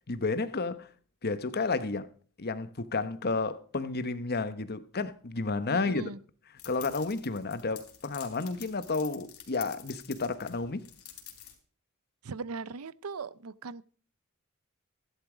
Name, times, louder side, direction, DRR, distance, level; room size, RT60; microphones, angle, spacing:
voice 1, 0.1-0.9 1.2-2.1 2.4-6.1 6.6-10.9, left 3 dB, 45° left, 1.0 m, -31 dB
voice 2, 5.7-6.2 12.2-13.8, right 4 dB, 80° right, 0.6 m, -39 dB
sound 1, 6.6-11.5, left 11 dB, 90° left, 3.5 m, -48 dB
15.0 x 11.5 x 5.0 m
head